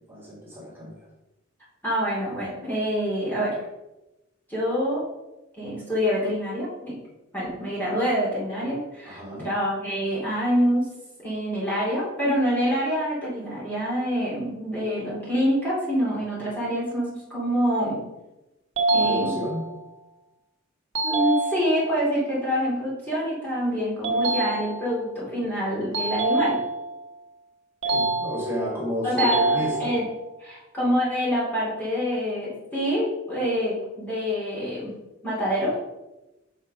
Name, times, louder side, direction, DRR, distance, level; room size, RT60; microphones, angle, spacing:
voice 1, 0.1-0.9 9.0-9.5 19.0-19.6 27.8-29.9, equal, 10° right, -7 dB, 2.6 m, -31 dB
voice 2, 1.8-3.5 4.5-5.0 5.6-7.0 7.3-10.9 11.2-18.0 18.9-19.4 21.0-26.6 29.0-30.0 30.4-34.9 35.2-35.7, equal, 10° left, -8 dB, 2.6 m, -26 dB
sound 1, 18.8-19.8 20.9-21.9 24.0-25.1 25.9-27.0 27.8-28.7 29.2-30.2, right 2 dB, 80° right, 1.2 m, -26 dB
5.9 x 5.3 x 5.3 m, 0.98 s
head